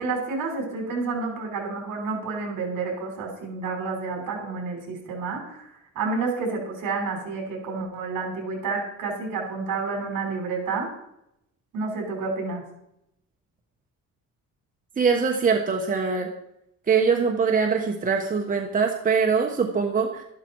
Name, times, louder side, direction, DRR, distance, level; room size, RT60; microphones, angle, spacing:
voice 1, 0.0-10.9 11.7-12.6, right 4 dB, 70° right, 0 dB, 5.6 m, -30 dB
voice 2, 15.0-16.3 16.9-20.2, right 5 dB, 25° right, 2 dB, 1.2 m, -23 dB
13.0 x 12.0 x 4.7 m, 0.80 s
cardioid pair, 145°, 33 cm